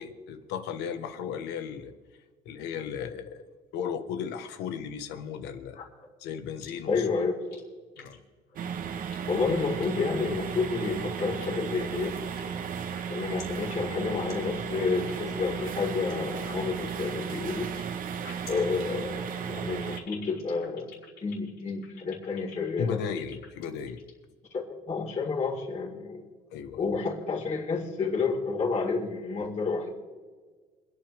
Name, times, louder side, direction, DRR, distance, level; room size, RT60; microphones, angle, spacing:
voice 1, 0.0-1.9 2.4-5.8 6.2-7.1 8.0-8.2 22.8-24.0 26.5-26.8, left 7 dB, 90° left, 9 dB, 1.4 m, -35 dB
sound 1, 5.3-6.1 6.6-7.0 7.4-7.6 8.0-8.2 8.5-8.6 9.1-9.3 9.6-9.9 10.6-10.9 11.2-11.8 12.1-12.5 12.8-13.4 13.7-13.9 14.2-14.3 14.6-15.1 15.5-16.1 16.4-17.8 18.1-24.2, left 6 dB, 70° left, 5.4 m, -49 dB
voice 2, 6.8-7.6 9.3-12.2 13.1-17.7 18.5-20.9 21.2-23.0 24.5-26.2 26.8-29.9, left 4 dB, 45° left, -3 dB, 4.6 m, -30 dB
sound 2, 8.6-20.0, right 7 dB, 55° right, 1.3 m, -35 dB
27.5 x 9.9 x 3.6 m, 1.5 s
cardioid pair, 110°, 17 cm